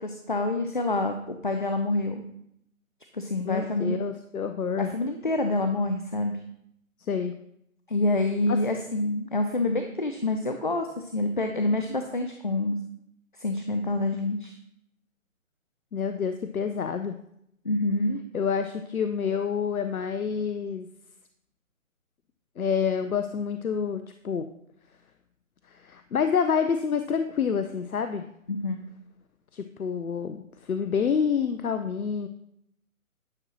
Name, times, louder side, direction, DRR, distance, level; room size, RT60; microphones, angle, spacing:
voice 1, 0.0-2.2 3.1-3.9 4.8-6.3 7.9-12.8 13.4-14.5 17.6-18.2 28.5-28.8, left 2 dB, 40° left, 6 dB, 0.4 m, -27 dB
voice 2, 3.4-4.9 7.0-7.3 8.5-8.6 15.9-17.2 18.3-20.9 22.6-24.5 25.7-28.2 29.5-32.3, left 6 dB, 80° left, 8 dB, 0.6 m, -28 dB
9.7 x 6.2 x 2.9 m, 0.74 s
figure-of-eight pair, 145°, 42 cm